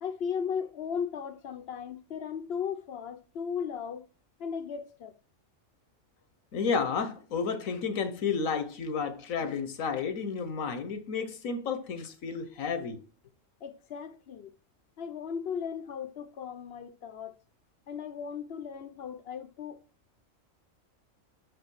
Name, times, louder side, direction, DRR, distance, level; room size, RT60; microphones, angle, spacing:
voice 1, 0.0-4.1 4.4-5.1 13.6-14.5 15.0-17.3 17.9-19.8, left 7 dB, 55° left, 0.8 m, -36 dB
voice 2, 6.5-13.0, left 5 dB, 90° left, 1.4 m, -31 dB
6.3 x 5.1 x 6.3 m
omnidirectional pair, 1.4 m